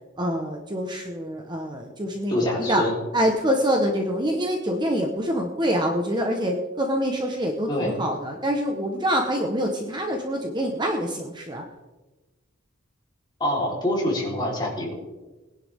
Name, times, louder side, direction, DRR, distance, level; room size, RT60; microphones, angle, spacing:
voice 1, 0.2-2.9 3.1-11.6, equal, 20° right, 2 dB, 1.2 m, -25 dB
voice 2, 2.3-3.0 7.7-7.9 13.4-14.9, left 1 dB, 20° left, -3 dB, 4.0 m, -25 dB
21.0 x 10.5 x 3.7 m, 1.1 s
head